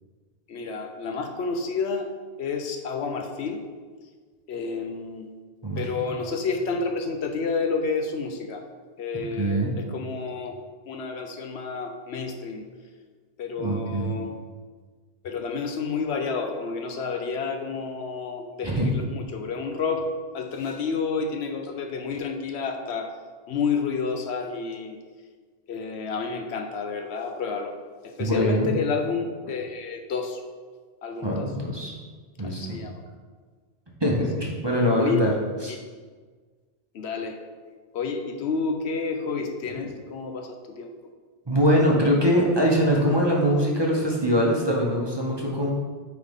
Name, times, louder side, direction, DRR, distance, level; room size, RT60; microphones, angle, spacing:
voice 1, 0.5-2.1 2.4-3.6 4.5-5.3 5.8-8.6 9.0-10.5 10.9-12.6 13.4-14.3 15.2-20.1 20.3-23.1 23.5-25.0 25.7-27.7 28.0-30.4 31.0-31.5 32.4-33.0 34.4-34.5 35.0-35.2 35.7-35.8 36.9-37.4 37.9-40.9, left 4 dB, 70° left, 4 dB, 0.9 m, -30 dB
voice 2, 9.4-9.7 13.6-14.1 18.6-18.9 28.2-28.7 31.2-31.9 32.4-32.8 34.0-35.3 35.6-35.7 41.5-45.7, equal, 25° right, -2 dB, 0.8 m, -23 dB
9.2 x 3.8 x 3.6 m, 1.5 s
omnidirectional pair, 1.2 m